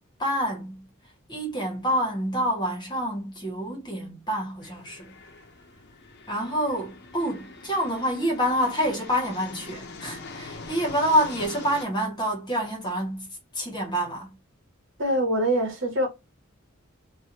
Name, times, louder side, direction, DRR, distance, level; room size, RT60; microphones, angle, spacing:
voice 1, 0.2-0.9 1.3-5.1 6.3-13.3 13.5-14.3, equal, 20° left, 0.9 m, -27 dB
sound 1, 4.6-11.8, left 3 dB, 55° left, 0.6 m, -43 dB
voice 2, 15.0-16.1, right 1 dB, 60° right, 1.1 m, -24 dB
3.2 x 2.2 x 2.7 m
head